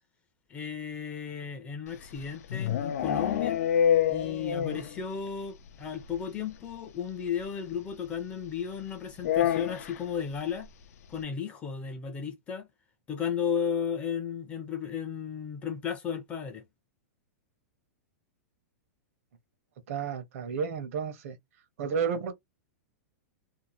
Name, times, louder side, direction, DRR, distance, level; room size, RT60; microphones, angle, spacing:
voice 1, 0.5-3.6 4.1-10.7 11.1-12.7 13.1-16.6, left 7 dB, 15° left, 0.5 m, -34 dB
sound 1, 1.9-5.0 5.3-5.4 5.7-5.8 6.0-6.2 7.4-7.5 9.2-10.1, left 9 dB, 75° left, 0.5 m, -27 dB
voice 2, 19.9-21.4 21.8-22.3, right 6 dB, 60° right, 0.9 m, -31 dB
2.7 x 2.1 x 3.0 m
supercardioid pair, 160°, 8 cm